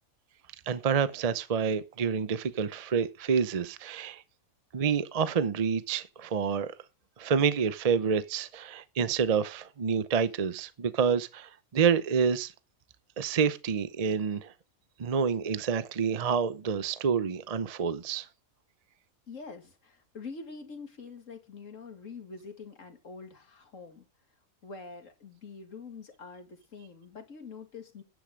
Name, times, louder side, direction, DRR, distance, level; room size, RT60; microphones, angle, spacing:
voice 1, 0.7-4.2 4.7-6.7 7.2-12.5 13.2-14.5 15.0-18.3, right 6 dB, 40° right, 0.5 m, -28 dB
voice 2, 19.3-24.1 24.6-28.0, left 4 dB, 65° left, 2.5 m, -45 dB
10.0 x 9.4 x 5.1 m
omnidirectional pair, 1.5 m